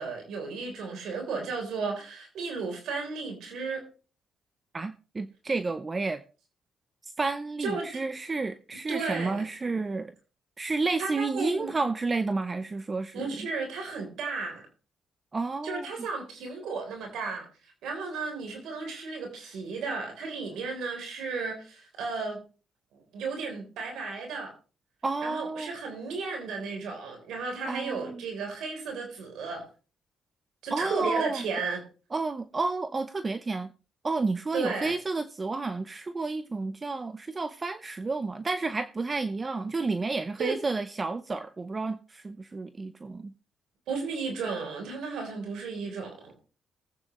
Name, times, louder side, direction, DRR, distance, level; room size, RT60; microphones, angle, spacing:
voice 1, 0.0-3.8 7.6-8.0 8.9-9.4 11.0-11.7 13.1-14.6 15.6-17.5 17.8-22.4 22.9-24.5 25.2-29.7 30.6-31.8 34.5-34.9 40.4-40.6 43.9-46.3, right 4 dB, 80° right, 3.7 m, -34 dB
voice 2, 4.7-6.2 7.0-10.1 10.6-13.3 15.3-15.9 25.0-25.7 27.7-28.2 30.7-31.5 32.1-33.7 34.0-43.3, right 3 dB, 30° right, 0.7 m, -31 dB
20.5 x 8.7 x 3.2 m
cardioid pair, 90°, 0 cm